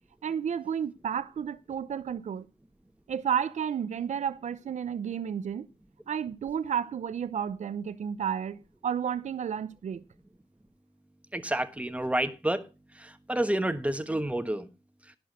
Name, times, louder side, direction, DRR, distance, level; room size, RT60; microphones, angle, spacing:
voice 1, 0.2-2.5 3.1-5.7 6.1-10.0, right 8 dB, 80° right, 0.6 m, -32 dB
voice 2, 11.3-12.6 12.9-14.7, right 1 dB, 10° right, 1.3 m, -29 dB
11.0 x 6.2 x 6.1 m
cardioid pair, 65°, 12 cm